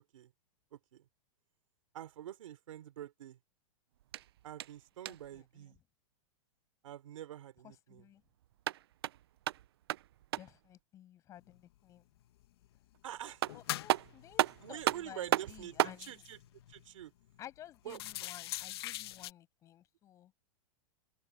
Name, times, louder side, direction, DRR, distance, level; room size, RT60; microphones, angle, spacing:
voice 1, 1.9-3.4 4.4-5.8 6.8-8.0 13.0-13.4 14.6-16.4 16.7-17.1 17.9-18.0, right 11 dB, 70° right, 3.9 m, -46 dB
sound 1, 4.0-5.4 8.4-10.7 12.9-13.0 13.4-16.0, right 14 dB, 50° right, 0.4 m, -35 dB
voice 2, 5.1-5.8 7.6-8.2 10.4-12.1 13.5-16.2 17.4-20.3, left 12 dB, 20° left, 6.1 m, -54 dB
sound 2, 11.5-11.6 12.0-12.8 13.2-16.9 17.3-17.4 17.8-19.3, left 15 dB, 50° left, 1.3 m, -44 dB
supercardioid pair, 175°, 17 cm